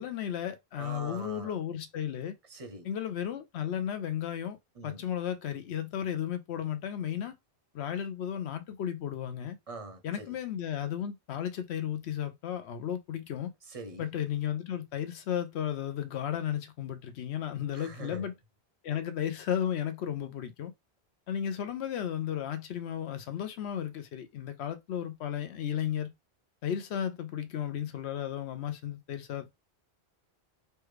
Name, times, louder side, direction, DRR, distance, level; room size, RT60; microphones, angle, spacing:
voice 1, 0.0-2.4 2.8-4.6 4.8-7.4 7.7-9.6 10.0-13.5 14.0-18.3 18.8-20.7 21.3-26.1 26.6-29.5, left 9 dB, 85° left, 0.9 m, -34 dB
voice 2, 0.8-1.6 2.5-2.9 4.8-5.0 9.7-10.4 13.7-14.1 17.7-18.3, right 3 dB, 40° right, 0.6 m, -43 dB
3.3 x 2.2 x 3.1 m
omnidirectional pair, 1.1 m